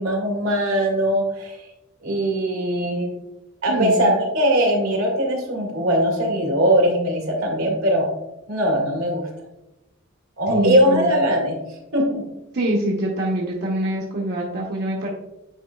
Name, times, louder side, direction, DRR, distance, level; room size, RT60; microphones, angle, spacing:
voice 1, 0.0-1.6 2.0-3.1 3.6-8.1 8.5-9.3 10.4-11.5 11.9-12.3, equal, 85° right, 0 dB, 1.9 m, -20 dB
voice 2, 3.7-4.1 10.5-11.1 12.5-15.1, right 1 dB, 50° right, -3 dB, 0.9 m, -24 dB
9.3 x 4.8 x 2.3 m, 0.95 s
head